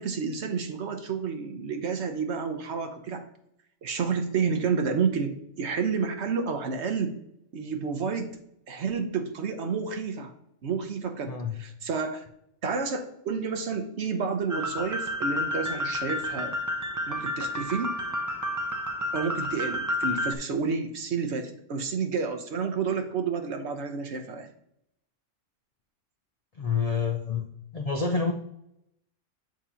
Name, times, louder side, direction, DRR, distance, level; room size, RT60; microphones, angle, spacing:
voice 1, 0.0-3.2 3.8-7.2 7.5-8.3 8.7-10.3 10.6-12.2 12.6-16.6 17.1-17.9 19.1-24.5, right 5 dB, 65° right, 6 dB, 1.0 m, -30 dB
voice 2, 11.3-11.6 26.6-27.5 27.7-28.3, left 5 dB, 55° left, 4 dB, 0.4 m, -27 dB
sound 1, 14.5-20.3, left 1 dB, 30° right, 0.3 m, -30 dB
7.5 x 2.9 x 5.5 m, 0.76 s
omnidirectional pair, 1.3 m